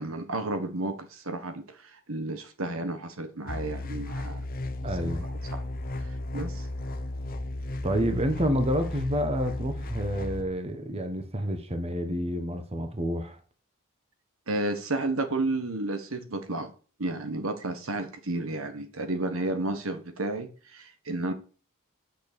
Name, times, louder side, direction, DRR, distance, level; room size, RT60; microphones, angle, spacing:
voice 1, 0.0-4.4 5.0-5.1 5.5-5.6 6.0-6.7 14.5-16.7 17.0-21.3, right 2 dB, 65° right, 1.5 m, -32 dB
sound 1, 3.5-10.4, left 1 dB, 40° left, 1.0 m, -34 dB
voice 2, 4.8-5.3 7.8-13.4, equal, 30° right, 1.3 m, -29 dB
8.3 x 6.4 x 6.9 m
head